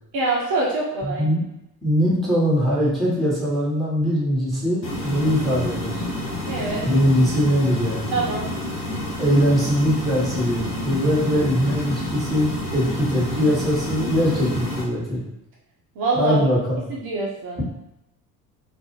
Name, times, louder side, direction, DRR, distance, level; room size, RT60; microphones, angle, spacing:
voice 1, 0.1-1.3 6.5-6.8 8.1-8.5 16.0-16.4 16.9-17.6, right 3 dB, 45° right, -4 dB, 0.6 m, -24 dB
voice 2, 1.0-1.4 1.8-6.0 6.8-8.1 9.2-15.2 16.1-16.8, equal, ahead, -7 dB, 0.9 m, -21 dB
sound 1, 4.8-14.8, left 1 dB, 90° left, 0.6 m, -29 dB
2.3 x 2.0 x 3.0 m, 0.89 s
figure-of-eight pair, 60°, 50 cm